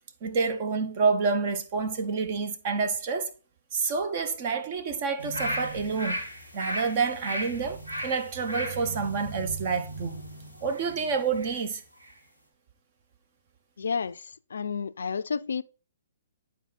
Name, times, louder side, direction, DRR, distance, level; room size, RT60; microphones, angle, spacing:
voice 1, 0.2-3.3 3.7-6.2 6.5-10.2 10.6-11.8, right 5 dB, 40° right, 1.1 m, -28 dB
sound 1, 5.2-11.6 12.0-12.1, right 1 dB, 80° right, 3.6 m, -36 dB
voice 2, 13.8-14.2 14.5-15.6, left 5 dB, 70° left, 0.4 m, -30 dB
9.2 x 4.6 x 4.0 m
figure-of-eight pair, 125°, 0 cm